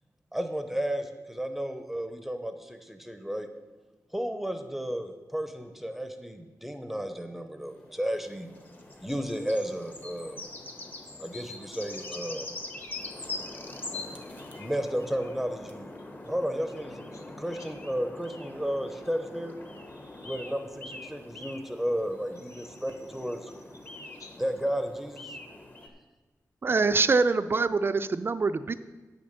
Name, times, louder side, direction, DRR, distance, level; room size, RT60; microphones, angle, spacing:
voice 1, 0.3-3.5 4.1-8.5 9.0-10.4 11.2-12.5 14.5-15.9 16.2-19.5 20.2-23.5 24.4-25.3, equal, 5° right, 6 dB, 0.6 m, -33 dB
sound 1, 7.7-25.9, left 2 dB, 30° left, 1.1 m, -43 dB
voice 2, 19.9-20.4 21.6-21.7 22.5-24.4, left 2 dB, 60° left, 1 dB, 1.7 m, -52 dB
voice 3, 26.6-28.7, right 4 dB, 35° right, 12 dB, 0.3 m, -24 dB
9.1 x 6.8 x 6.6 m, 1.2 s
wide cardioid pair, 150°, 6 cm